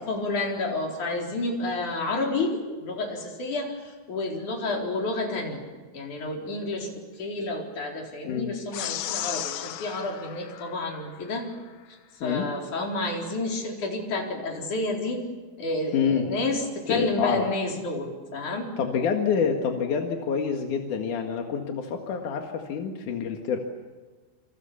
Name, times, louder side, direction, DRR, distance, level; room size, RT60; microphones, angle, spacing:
voice 1, 0.1-5.6 5.9-11.5 12.2-15.2 15.6-18.7, left 2 dB, 40° left, 0 dB, 5.1 m, -30 dB
sound 1, 8.7-11.4, left 12 dB, 80° left, 2.2 m, -35 dB
voice 2, 15.9-16.3 16.9-17.4 18.8-23.6, left 6 dB, 55° left, 3 dB, 2.4 m, -27 dB
28.5 x 27.0 x 7.1 m, 1.3 s
omnidirectional pair, 5.9 m